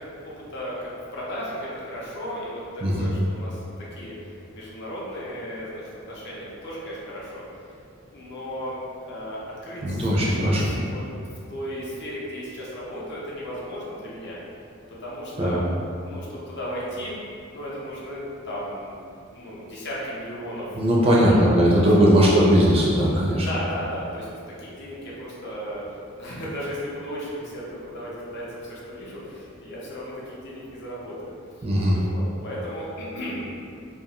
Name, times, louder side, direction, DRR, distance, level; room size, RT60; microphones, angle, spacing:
voice 1, 0.1-7.4 8.1-8.8 9.1-11.0 11.5-14.4 14.9-15.7 16.0-17.2 17.5-19.0 19.3-20.8 21.2-21.9 23.4-31.3 31.9-33.4, equal, 55° left, -6 dB, 0.6 m, -35 dB
voice 2, 2.8-3.1 9.8-10.7 15.4-15.6 20.7-23.5 31.6-32.0, equal, 25° right, -5 dB, 0.4 m, -19 dB
2.5 x 2.3 x 2.8 m, 2.4 s
head